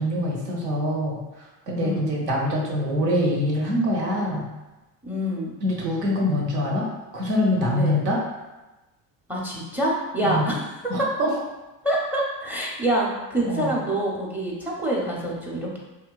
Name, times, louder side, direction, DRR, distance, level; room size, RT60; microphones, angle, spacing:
voice 1, 0.0-4.5 5.6-6.9 7.1-8.2 10.2-10.5 10.9-11.3 13.4-13.7, left 1 dB, 85° right, -2 dB, 0.8 m, -24 dB
voice 2, 1.8-2.2 5.0-5.5 7.6-8.0 9.3-11.1 11.8-15.8, right 1 dB, 5° right, -3 dB, 0.5 m, -26 dB
2.8 x 2.2 x 2.3 m, 1.1 s
hypercardioid pair, 60°, 47 cm